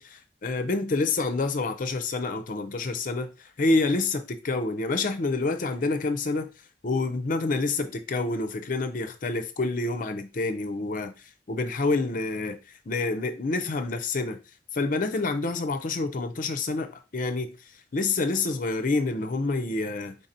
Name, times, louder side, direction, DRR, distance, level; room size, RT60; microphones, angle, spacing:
voice 1, 0.0-3.3 3.6-6.5 6.8-11.1 11.5-12.6 12.9-14.4 14.7-17.5 17.9-20.2, left 3 dB, 50° left, 0.5 m, -27 dB
3.9 x 3.6 x 2.7 m
head